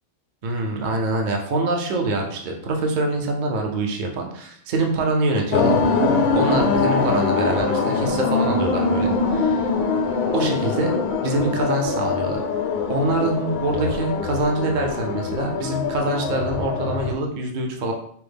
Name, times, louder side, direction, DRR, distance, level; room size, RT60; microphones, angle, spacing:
voice 1, 0.4-5.8 6.3-9.7 10.3-10.9 11.2-12.4 12.9-17.9, right 2 dB, 55° right, 1 dB, 0.6 m, -24 dB
sound 1, 5.5-17.1, left 4 dB, 65° left, 0.7 m, -23 dB
4.5 x 2.0 x 3.4 m, 0.66 s
omnidirectional pair, 1.2 m